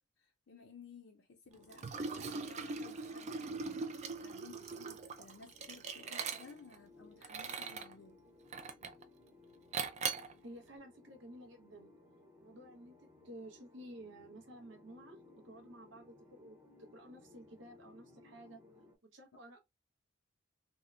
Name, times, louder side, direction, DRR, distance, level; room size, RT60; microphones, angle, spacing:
voice 1, 0.0-8.2, left 4 dB, 65° left, 0.5 m, -57 dB
sound 1, 1.5-18.9, left 3 dB, 10° right, 0.7 m, -62 dB
Liquid, 1.7-6.7 7.2-7.9 8.5-9.0 9.7-10.3, right 5 dB, 35° right, 0.3 m, -41 dB
voice 2, 10.4-11.9 12.4-15.2 15.4-16.6 16.9-18.6 19.0-19.6, right 1 dB, 60° right, 0.7 m, -53 dB
3.5 x 2.1 x 2.3 m
head